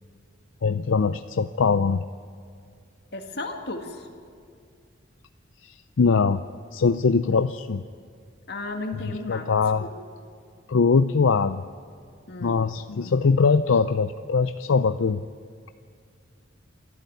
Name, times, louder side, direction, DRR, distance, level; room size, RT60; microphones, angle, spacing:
voice 1, 0.6-2.0 5.6-6.4 6.7-7.8 9.0-9.8 10.7-11.6 12.4-15.2, left 5 dB, 75° left, 12 dB, 0.5 m, -22 dB
voice 2, 3.1-4.1 8.5-9.5 9.8-9.9 12.3-12.6, left 2 dB, 55° left, 4 dB, 1.9 m, -34 dB
27.0 x 13.5 x 9.5 m, 2.2 s
head